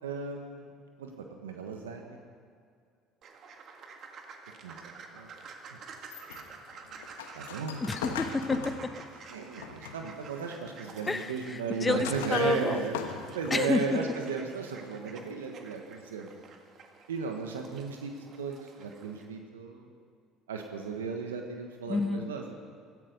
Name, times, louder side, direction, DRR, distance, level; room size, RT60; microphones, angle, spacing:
voice 1, 0.0-0.7 1.0-2.2 4.6-4.8 5.1-5.3 5.7-5.8 7.3-7.9 9.3-13.0 13.3-16.3 17.1-19.9 20.5-22.5, right 5 dB, 90° right, 3 dB, 1.3 m, -35 dB
sound 1, 3.2-19.3, right 5 dB, 50° right, 1.8 m, -50 dB
sound 2, 6.0-10.2 10.7-11.2 11.7-13.7, left 7 dB, 85° left, 1.2 m, -40 dB
voice 2, 7.8-9.0 11.1-12.9 13.5-14.0 21.9-22.3, left 3 dB, 20° left, 11 dB, 0.9 m, -29 dB
16.5 x 14.5 x 5.4 m, 2.3 s
hypercardioid pair, 70°, 0 cm